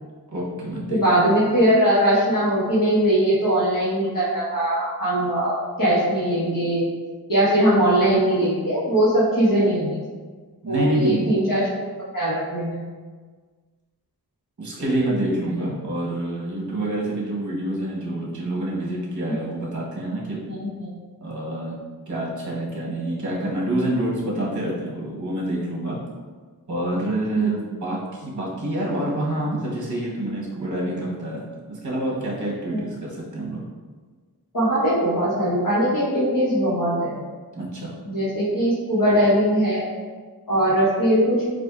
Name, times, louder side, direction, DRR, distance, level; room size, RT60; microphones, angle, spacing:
voice 1, 0.3-1.0 10.6-11.5 14.6-20.4 21.2-21.8 22.1-26.0 26.7-31.4 31.7-33.6 37.5-37.9, right 1 dB, 50° right, -4 dB, 0.9 m, -27 dB
voice 2, 0.9-6.8 7.3-10.0 10.7-11.6 12.1-12.8 20.5-20.9 27.3-27.5 32.7-32.8 34.5-37.2 38.0-39.9 40.5-41.4, right 1 dB, 55° left, -9 dB, 1.2 m, -20 dB
4.2 x 2.5 x 2.4 m, 1.5 s
wide cardioid pair, 45°, 38 cm